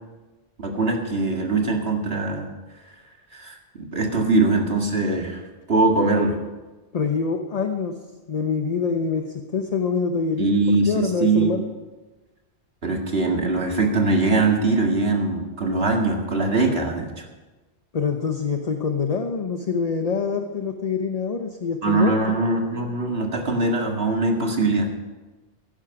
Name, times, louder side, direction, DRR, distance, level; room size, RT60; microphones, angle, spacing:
voice 1, 0.6-2.5 3.3-5.4 5.7-6.4 10.4-11.5 12.8-17.3 21.8-24.9, right 3 dB, 65° right, 2 dB, 2.2 m, -22 dB
voice 2, 6.9-8.0 8.3-10.6 10.9-11.6 17.9-22.1, left 5 dB, 40° left, 5 dB, 0.9 m, -25 dB
15.0 x 11.5 x 5.8 m, 1.2 s
omnidirectional pair, 1.1 m